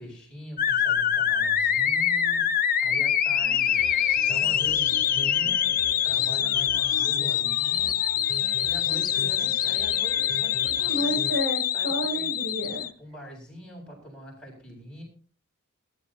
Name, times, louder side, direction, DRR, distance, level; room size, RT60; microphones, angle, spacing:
voice 1, 0.0-3.8 4.2-8.0 8.6-11.2 11.7-12.3 13.0-15.0, equal, 5° left, -4 dB, 7.8 m, -43 dB
sound 1, 0.6-12.9, left 9 dB, 40° left, 0.8 m, -25 dB
sound 2, 3.4-11.4, left 4 dB, 60° left, 1.1 m, -39 dB
voice 2, 10.8-12.9, right 1 dB, 35° right, -1 dB, 6.6 m, -30 dB
21.5 x 12.5 x 3.0 m, 0.41 s
head